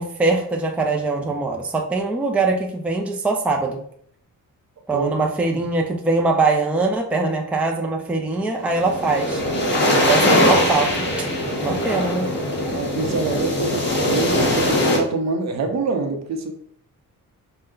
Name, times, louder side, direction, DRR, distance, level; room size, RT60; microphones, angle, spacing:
voice 1, 0.0-3.8 4.9-9.4 10.1-10.9 11.6-12.3, right 3 dB, 5° right, 1 dB, 0.4 m, -22 dB
sound 1, 8.6-15.0, left 1 dB, 35° left, 1.2 m, -21 dB
voice 2, 11.5-11.9 12.7-16.5, right 3 dB, 55° right, 4 dB, 0.7 m, -26 dB
5.4 x 2.1 x 3.7 m, 0.65 s
cardioid pair, 145°, 33 cm